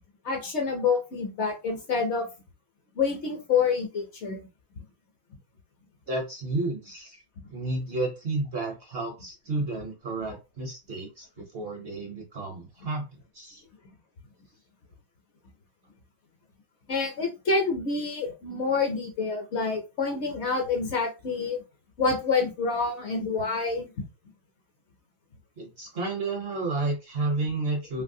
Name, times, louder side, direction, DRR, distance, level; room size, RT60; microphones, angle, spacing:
voice 1, 0.2-2.3 3.0-4.4 16.9-21.6 22.0-23.9, left 4 dB, 60° left, 2 dB, 0.9 m, -27 dB
voice 2, 6.1-7.2 7.5-13.6 25.6-28.0, right 2 dB, 55° right, 1 dB, 0.7 m, -31 dB
2.8 x 2.6 x 2.6 m, 0.28 s
omnidirectional pair, 1.5 m